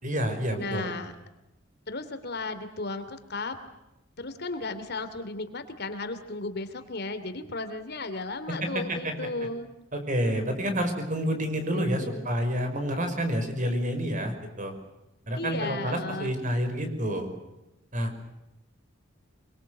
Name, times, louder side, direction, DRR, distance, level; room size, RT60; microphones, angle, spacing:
voice 1, 0.0-0.9 8.5-9.1 9.9-14.7 15.3-17.3 17.9-18.1, equal, 40° right, 7 dB, 5.7 m, -29 dB
voice 2, 0.6-1.1 1.9-3.6 4.2-9.7 11.7-12.2 15.4-16.3, left 3 dB, 55° left, 9 dB, 2.8 m, -35 dB
25.5 x 23.5 x 8.0 m, 0.91 s
head